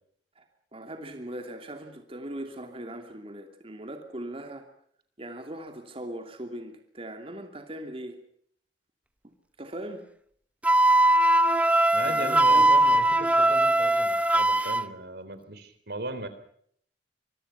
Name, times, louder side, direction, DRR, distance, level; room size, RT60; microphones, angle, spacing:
voice 1, 0.7-4.7 5.2-8.2 9.6-10.0 12.0-12.7, right 1 dB, 35° right, 5 dB, 2.8 m, -39 dB
Wind instrument woodwind instrument, 10.6-14.8, right 1 dB, 10° right, 0.9 m, -21 dB
voice 2, 11.9-16.3, right 2 dB, 65° right, 11 dB, 3.6 m, -37 dB
25.5 x 23.5 x 5.9 m, 0.64 s
head